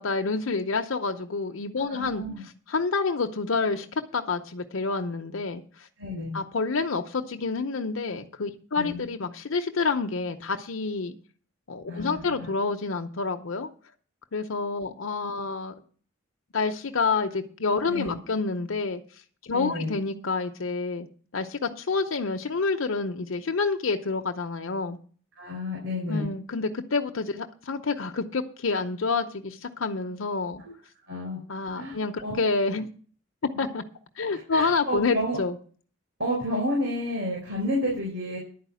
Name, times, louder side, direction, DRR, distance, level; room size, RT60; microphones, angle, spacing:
voice 1, 0.0-3.9 4.1-5.9 6.3-11.1 11.7-13.7 14.3-15.7 16.5-19.0 19.4-21.1 21.3-25.0 26.1-30.6 31.5-32.9 33.6-33.8 34.2-35.6, left 4 dB, 85° left, 5 dB, 0.8 m, -28 dB
voice 2, 1.8-2.4 6.0-6.4 8.7-9.1 11.9-12.5 17.9-18.2 19.5-19.9 25.4-26.3 31.1-31.4 31.7-32.4 34.3-35.4 36.2-38.4, left 1 dB, 70° right, -2 dB, 4.3 m, -31 dB
11.0 x 4.9 x 8.3 m, 0.43 s
head